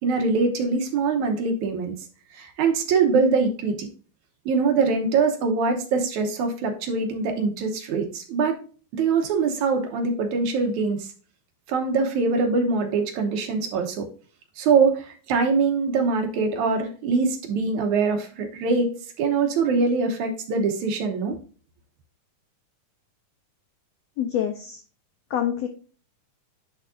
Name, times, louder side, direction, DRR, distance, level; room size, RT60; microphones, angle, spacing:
voice 1, 0.0-1.9 2.3-3.9 4.5-8.6 8.9-11.1 11.7-14.1 14.6-21.4, right 4 dB, 70° right, 4 dB, 2.2 m, -23 dB
voice 2, 24.2-24.8 25.3-25.7, left 10 dB, 80° left, 5 dB, 1.5 m, -26 dB
9.9 x 4.6 x 2.5 m, 0.39 s
omnidirectional pair, 3.8 m